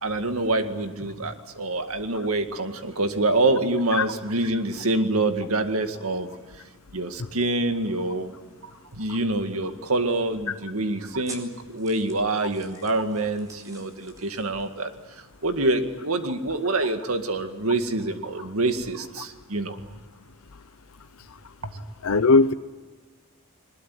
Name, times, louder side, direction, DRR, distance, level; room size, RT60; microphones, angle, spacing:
voice 1, 0.0-6.3 6.9-8.3 8.6-19.8 21.6-21.8, right 2 dB, 80° right, 7 dB, 2.1 m, -26 dB
sound 1, 7.7-15.9, right 1 dB, 15° right, 4.3 m, -51 dB
voice 2, 22.0-22.5, left 3 dB, 85° left, 11 dB, 0.8 m, -18 dB
22.5 x 21.0 x 9.4 m, 1.4 s
head